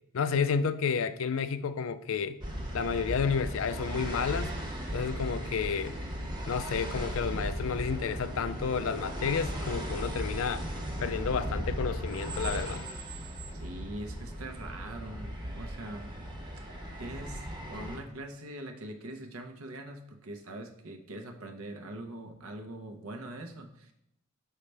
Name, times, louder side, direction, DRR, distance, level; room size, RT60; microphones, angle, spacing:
voice 1, 0.1-2.4 2.7-4.5 4.9-6.0 6.5-10.6 11.0-12.9, left 6 dB, 70° left, 13 dB, 0.4 m, -31 dB
sound 1, 2.4-18.0, equal, 20° right, 1.0 m, -37 dB
voice 2, 13.5-16.2 17.0-23.9, right 1 dB, 85° right, 5 dB, 0.9 m, -43 dB
6.6 x 5.6 x 3.3 m, 0.81 s
head